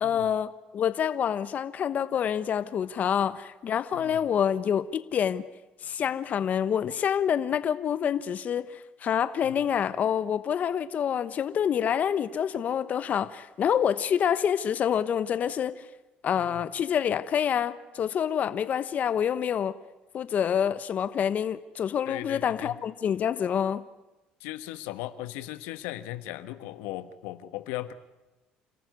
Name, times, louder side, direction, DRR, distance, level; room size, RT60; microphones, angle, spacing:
voice 1, 0.0-5.4 5.8-15.9 16.2-19.7 20.1-23.8, left 8 dB, 50° left, 13 dB, 1.1 m, -27 dB
voice 2, 22.1-22.8 24.4-27.9, left 15 dB, 80° left, 11 dB, 1.3 m, -38 dB
29.5 x 14.0 x 9.6 m, 1.0 s
supercardioid pair, 80°, 3 cm